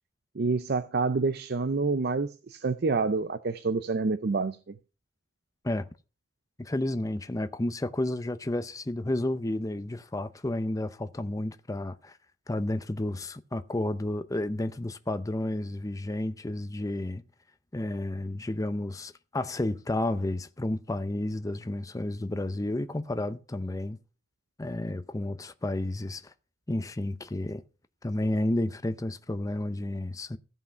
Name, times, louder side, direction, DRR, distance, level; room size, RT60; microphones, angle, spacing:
voice 1, 0.4-4.7, right 4 dB, 60° right, 0.6 m, -28 dB
voice 2, 6.6-12.2 12.5-17.2 17.7-24.0 24.6-26.3 26.7-27.6 28.0-30.4, left 1 dB, 20° left, 0.6 m, -31 dB
14.5 x 5.6 x 5.6 m
head